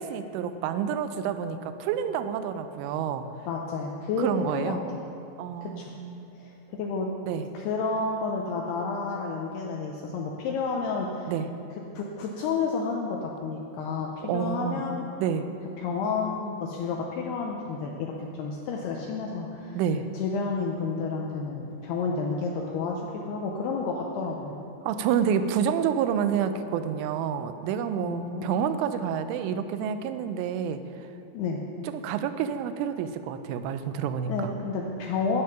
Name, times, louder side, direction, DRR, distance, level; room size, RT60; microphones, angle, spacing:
voice 1, 0.0-3.3 4.2-4.8 5.4-6.3 7.2-7.5 11.3-11.5 14.3-14.8 15.2-15.5 19.7-20.0 24.8-30.8 31.8-34.5, right 8 dB, 90° right, 10 dB, 3.1 m, -28 dB
voice 2, 3.5-4.8 5.6-5.9 6.4-7.1 7.5-11.3 11.9-15.1 15.8-19.8 20.1-24.5 28.0-28.7 31.3-31.6 34.3-35.4, left 4 dB, 80° left, 0 dB, 2.3 m, -31 dB
12.0 x 9.5 x 5.8 m, 2.8 s
omnidirectional pair, 5.5 m